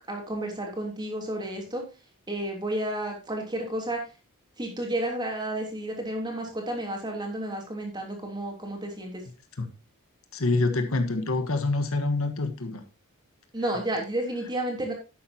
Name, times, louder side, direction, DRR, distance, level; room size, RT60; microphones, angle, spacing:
voice 1, 0.1-1.8 2.3-4.0 4.6-9.2 13.5-14.9, right 1 dB, 20° right, 3.2 m, -31 dB
voice 2, 10.3-12.8, left 3 dB, 70° left, 1.4 m, -26 dB
11.5 x 9.0 x 2.9 m
head